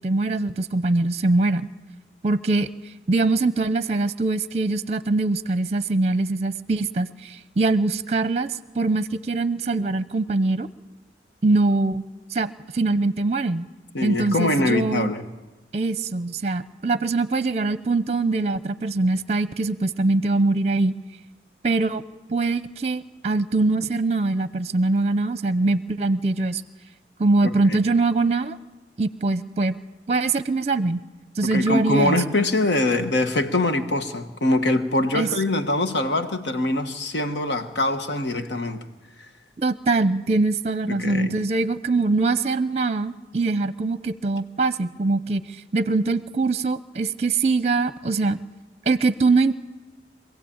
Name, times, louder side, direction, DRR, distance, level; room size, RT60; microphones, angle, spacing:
voice 1, 0.0-1.7 2.2-2.7 3.1-10.7 11.4-12.0 12.3-13.7 14.0-15.1 15.7-21.0 21.6-22.0 22.3-26.6 27.2-28.6 29.0-29.8 30.1-31.0 31.4-32.2 35.1-35.3 39.6-45.4 45.7-48.4 48.9-49.6, right 3 dB, 35° right, 0.7 m, -23 dB
voice 2, 13.9-15.2 27.4-27.8 31.5-38.8 40.9-41.3, left 2 dB, 75° left, 1.5 m, -23 dB
25.0 x 16.0 x 8.8 m
head